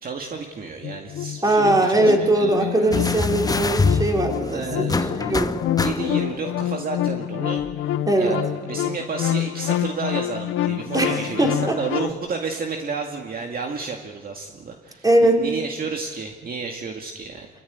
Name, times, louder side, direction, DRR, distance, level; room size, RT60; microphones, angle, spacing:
voice 1, 0.0-3.2 4.4-5.4 5.8-17.5, right 4 dB, 45° right, 2 dB, 2.1 m, -31 dB
sound 1, 0.8-12.1, left 12 dB, 85° left, 0.8 m, -27 dB
voice 2, 1.4-5.5 8.1-8.4 10.9-11.8 15.0-15.4, right 1 dB, 20° right, 1 dB, 4.0 m, -20 dB
sound 2, 2.9-6.4 7.6-7.7, left 3 dB, 20° left, 0.9 m, -25 dB
27.0 x 14.0 x 9.5 m, 1.5 s
cardioid pair, 90°, 20 cm